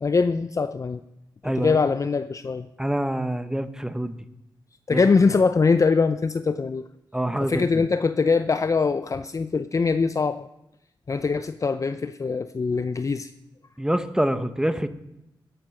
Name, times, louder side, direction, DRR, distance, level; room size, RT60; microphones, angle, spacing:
voice 1, 0.0-1.0 1.4-2.7 4.9-6.9 7.4-10.5 11.1-13.3, left 4 dB, 40° left, 11 dB, 0.6 m, -22 dB
voice 2, 1.4-1.8 2.8-4.2 4.9-5.0 7.1-7.8 13.8-14.9, right 1 dB, 10° right, 11 dB, 1.0 m, -26 dB
14.0 x 10.5 x 6.5 m, 0.86 s
cardioid pair, 65°, 8 cm